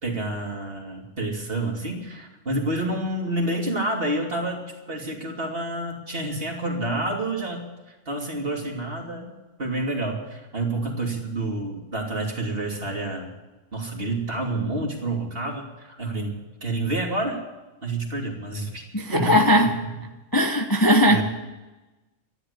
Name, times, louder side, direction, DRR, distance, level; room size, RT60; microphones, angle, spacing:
voice 1, 0.0-9.3 9.6-13.3 13.7-17.4 17.8-18.8 19.1-19.7 21.1-21.2, right 2 dB, 45° right, 0 dB, 3.2 m, -29 dB
voice 2, 18.9-19.7 20.3-21.2, equal, 15° left, 3 dB, 1.0 m, -18 dB
13.5 x 11.0 x 8.2 m, 1.1 s
omnidirectional pair, 1.4 m